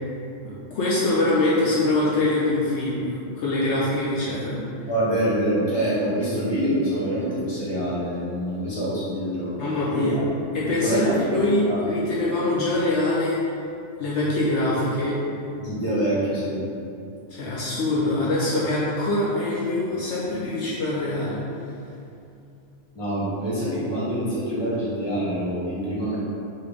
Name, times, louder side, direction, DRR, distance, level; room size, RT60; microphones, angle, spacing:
voice 1, 0.4-4.6 9.6-10.2 10.5-13.4 14.0-15.2 17.3-21.4, left 2 dB, 70° left, -7 dB, 0.9 m, -24 dB
voice 2, 4.9-9.5 9.9-10.2 10.8-11.1 11.6-11.8 15.6-16.6 22.9-26.2, right 1 dB, 20° left, -9 dB, 1.2 m, -25 dB
4.3 x 3.1 x 3.5 m, 2.7 s
omnidirectional pair, 1.3 m